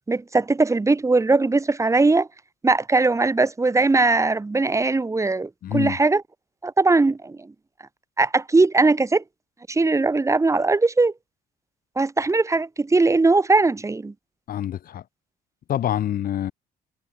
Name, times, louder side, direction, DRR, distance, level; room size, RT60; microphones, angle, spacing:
voice 1, 0.1-2.3 2.6-6.2 6.6-7.5 8.2-9.2 9.7-11.1 12.0-14.1, right 3 dB, 15° right, 7.3 m, -20 dB
voice 2, 5.6-6.0 14.5-15.0 15.7-16.5, left 11 dB, 60° left, 6.5 m, -26 dB
cardioid pair, 110°, 17 cm